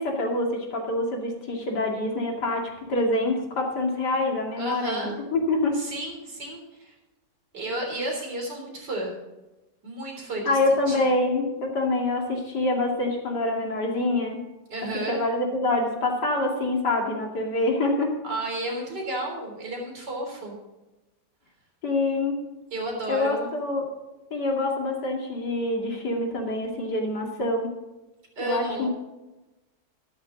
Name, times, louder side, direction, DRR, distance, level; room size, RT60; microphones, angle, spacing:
voice 1, 0.0-5.8 10.4-14.4 15.1-18.1 21.8-22.4 23.1-23.9 24.3-27.7 28.4-28.9, left 2 dB, 70° left, 0 dB, 3.0 m, -26 dB
voice 2, 4.6-5.1 5.7-6.9 7.5-9.1 9.8-10.6 10.9-11.0 14.7-15.2 18.2-20.6 22.7-23.5 28.4-28.9, right 1 dB, 70° right, 0 dB, 4.2 m, -32 dB
13.0 x 12.5 x 3.9 m, 1.0 s
omnidirectional pair, 1.9 m